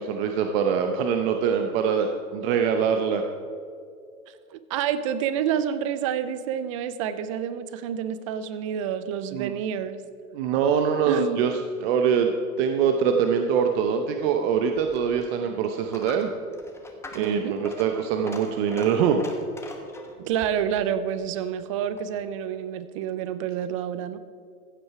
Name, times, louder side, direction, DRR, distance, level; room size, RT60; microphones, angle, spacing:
voice 1, 0.0-3.2 9.3-9.5 10.3-11.5 11.8-12.3 12.6-16.3 17.1-19.2, right 7 dB, 40° right, 5 dB, 0.9 m, -23 dB
voice 2, 4.5-10.0 11.0-11.4 17.2-17.6 20.2-24.2, right 9 dB, 25° right, 14 dB, 0.4 m, -28 dB
Coin (dropping), 14.7-22.2, left 2 dB, 5° left, 1.0 m, -43 dB
15.0 x 7.8 x 4.8 m, 2.2 s
hypercardioid pair, 120°, 45 cm